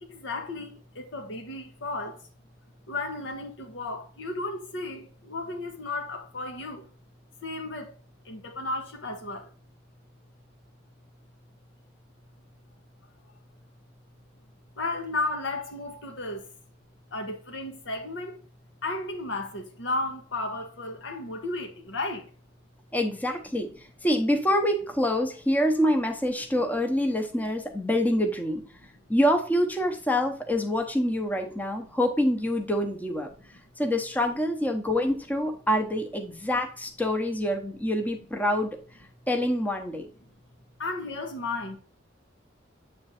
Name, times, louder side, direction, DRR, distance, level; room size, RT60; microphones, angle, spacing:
voice 1, 0.0-2.3 2.9-6.9 7.4-7.9 8.2-9.5 14.8-16.5 17.1-18.4 18.8-22.3 40.8-41.8, left 2 dB, 80° left, 1.1 m, -34 dB
voice 2, 22.9-28.6 29.1-33.3 33.8-38.8 39.3-40.1, equal, 10° left, 0.8 m, -26 dB
7.9 x 3.3 x 4.2 m
head